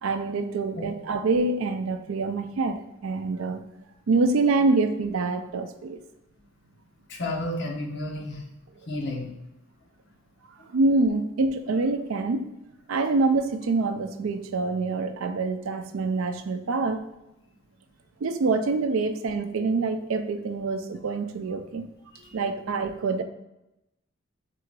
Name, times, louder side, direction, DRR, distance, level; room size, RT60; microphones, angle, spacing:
voice 1, 0.0-3.6 4.1-6.0 10.7-12.5 12.9-17.0 18.2-21.8 22.3-23.2, right 3 dB, 85° right, 9 dB, 0.4 m, -26 dB
voice 2, 7.1-8.5 8.9-9.3 22.1-22.4, left 1 dB, 60° left, 0 dB, 0.8 m, -32 dB
3.7 x 2.5 x 4.5 m, 0.93 s
head